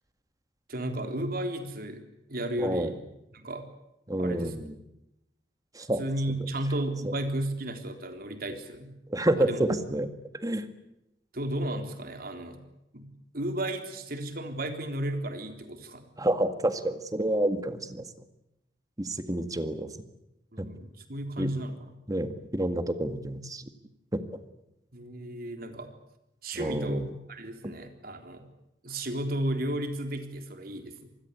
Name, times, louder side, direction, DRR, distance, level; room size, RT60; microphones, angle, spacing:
voice 1, 0.7-2.0 2.3-3.0 3.3-3.7 4.2-4.5 6.0-8.9 9.4-9.6 11.3-12.6 12.9-13.1 13.3-16.1 20.5-22.0 24.9-25.9 26.4-28.5 28.8-31.1, right 1 dB, 60° right, 6 dB, 3.7 m, -33 dB
voice 2, 2.6-2.9 4.1-4.7 5.8-6.0 9.1-10.1 10.4-10.7 16.2-18.1 19.0-19.9 20.6-20.7 21.4-21.5 22.1-23.6 24.1-24.2 26.6-27.1 30.7-30.8, right 1 dB, 20° right, 9 dB, 1.9 m, -28 dB
27.0 x 20.5 x 8.3 m, 0.86 s
head